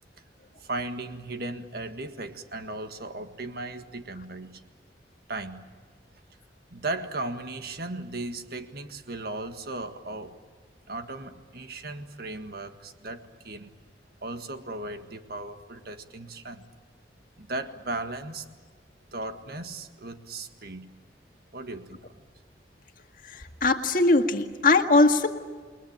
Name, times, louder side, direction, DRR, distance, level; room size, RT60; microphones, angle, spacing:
voice 1, 0.6-4.6 5.3-5.7 6.7-10.4 10.9-13.7 14.2-16.6 17.4-18.5 19.1-20.9 21.5-22.2, right 2 dB, 60° right, 7 dB, 1.8 m, -36 dB
voice 2, 23.2-25.3, left 2 dB, 50° left, 5 dB, 1.8 m, -21 dB
29.5 x 21.5 x 8.9 m, 1.5 s
head